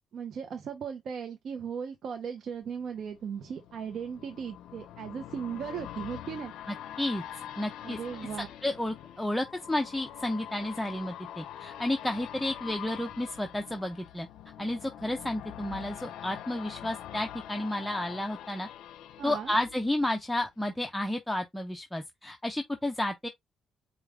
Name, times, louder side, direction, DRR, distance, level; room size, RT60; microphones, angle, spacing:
voice 1, 0.1-6.5 7.8-8.5 19.2-19.5, right 7 dB, 60° right, 0.7 m, -37 dB
sound 1, 2.6-20.4 20.8-20.9, left 11 dB, 85° left, 0.4 m, -44 dB
voice 2, 6.7-7.2 7.6-8.0 8.6-14.3 14.6-18.7 19.2-23.3, left 1 dB, 5° left, 0.6 m, -32 dB
4.8 x 2.5 x 3.4 m
cardioid pair, 90°, 0 cm